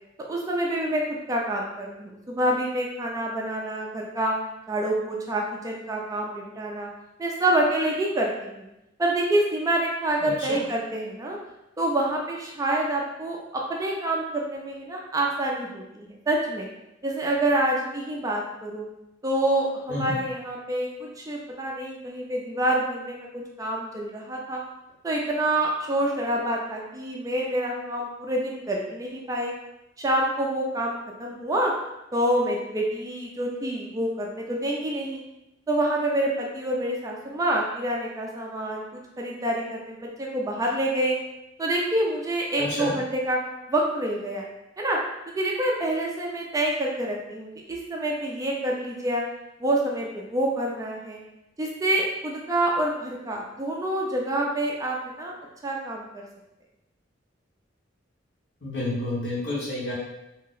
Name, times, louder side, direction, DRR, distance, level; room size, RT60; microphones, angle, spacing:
voice 1, 0.3-4.3 4.7-6.9 7.2-8.6 9.0-11.4 11.8-16.7 17.0-18.8 19.2-23.2 23.6-24.6 25.0-29.5 30.0-31.7 32.1-35.2 35.7-41.1 41.6-43.4 43.7-44.5 44.8-45.0 45.3-49.2 49.6-51.2 51.6-55.3 55.6-56.3, right 1 dB, 20° right, -1 dB, 0.3 m, -27 dB
voice 2, 10.2-10.6 19.9-20.1 42.6-42.9 58.6-59.9, left 1 dB, 65° left, -7 dB, 1.1 m, -29 dB
2.7 x 2.0 x 3.8 m, 0.91 s
head